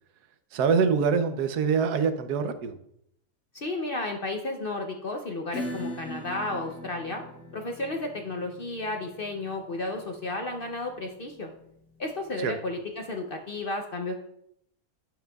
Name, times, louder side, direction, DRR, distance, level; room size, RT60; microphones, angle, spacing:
voice 1, 0.5-2.8 12.4-12.5, right 5 dB, 85° right, 9 dB, 1.3 m, -24 dB
voice 2, 3.5-7.2 7.5-11.5 12.0-14.1, left 2 dB, 50° left, 3 dB, 0.7 m, -33 dB
Acoustic guitar / Strum, 5.5-12.7, left 1 dB, 75° left, 1.9 m, -42 dB
10.0 x 7.8 x 2.3 m, 0.74 s
omnidirectional pair, 1.7 m